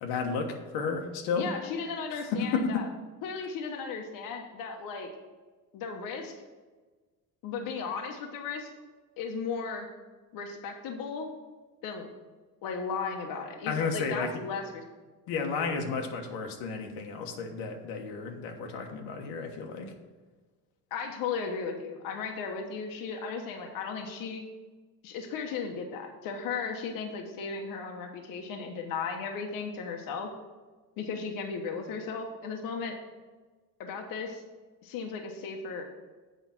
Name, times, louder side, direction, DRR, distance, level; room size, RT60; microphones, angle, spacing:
voice 1, 0.0-1.5 2.1-2.8 13.7-14.3 15.3-19.9, left 5 dB, 90° left, 2 dB, 1.3 m, -32 dB
voice 2, 1.4-2.9 3.2-5.1 5.7-6.3 7.4-8.7 9.2-9.9 10.3-11.3 11.8-12.1 12.6-14.8 20.9-24.4 25.0-30.3 31.0-33.0 33.8-34.4 34.8-35.9, left 5 dB, 65° left, 3 dB, 1.1 m, -36 dB
8.2 x 5.1 x 5.9 m, 1.3 s
cardioid pair, 140°, 37 cm